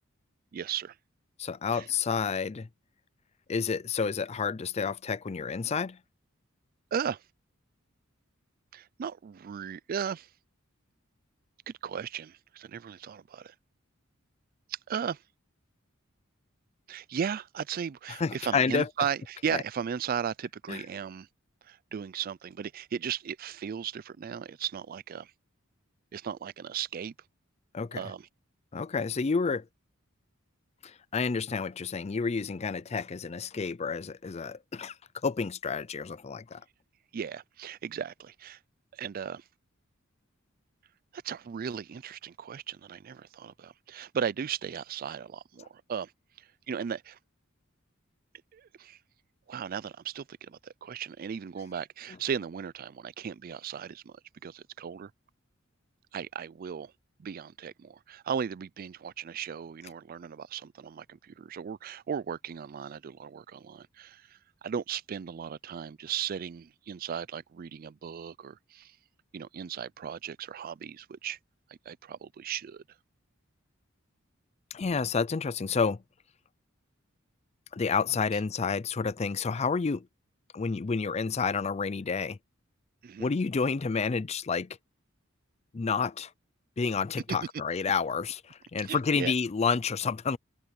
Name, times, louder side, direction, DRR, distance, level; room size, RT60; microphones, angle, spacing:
voice 1, 0.5-1.0 1.7-1.9 6.9-7.2 8.7-10.3 11.7-13.5 14.7-15.2 16.9-21.3 21.6-25.3 26.1-27.1 27.9-28.3 37.1-38.6 38.9-39.4 41.1-46.1 46.4-47.2 48.5-49.0 49.5-54.1 54.4-55.1 56.1-56.9 57.2-69.0 69.3-71.4 71.7-72.8 83.0-83.3 88.8-89.3, right 7 dB, 45° right, 0.3 m, -36 dB
voice 2, 1.4-2.7 3.5-6.0 18.2-18.9 19.5-19.6 20.7-20.8 27.7-28.0 28.7-29.6 30.8-34.9 35.2-36.6 74.7-76.0 77.7-80.1 80.5-82.4 83.2-84.7 85.7-86.3 86.8-90.4, left 5 dB, 30° left, 0.4 m, -29 dB
head